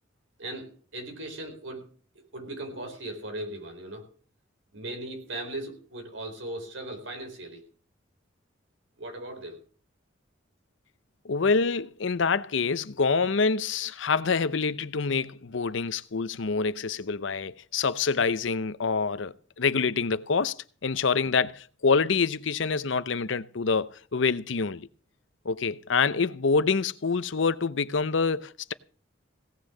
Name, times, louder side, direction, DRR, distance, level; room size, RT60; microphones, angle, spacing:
voice 1, 0.4-1.9 2.3-4.1 4.7-7.6 9.0-9.6, right 1 dB, 80° right, 4.5 m, -38 dB
voice 2, 11.2-24.9 25.4-28.7, left 5 dB, 75° left, 0.7 m, -26 dB
17.5 x 6.5 x 7.2 m
head